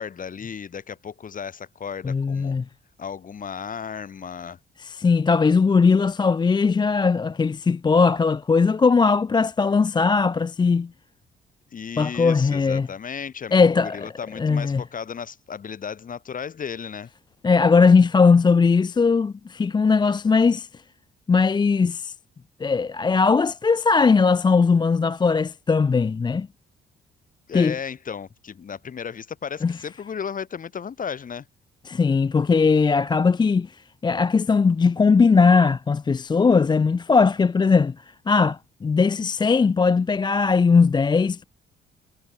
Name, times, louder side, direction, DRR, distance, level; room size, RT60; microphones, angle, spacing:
voice 1, 0.0-2.6 3.0-4.6 11.7-17.1 27.5-31.4, left 7 dB, 45° left, 1.7 m, -34 dB
voice 2, 2.0-2.6 4.8-10.9 12.0-12.9 13.5-14.1 14.4-14.8 17.4-20.7 21.3-22.1 22.6-26.5 27.5-27.7 29.6-29.8 31.9-33.7 34.0-37.9 38.3-41.4, left 5 dB, 20° left, 0.5 m, -19 dB
cardioid pair, 90°, 20 cm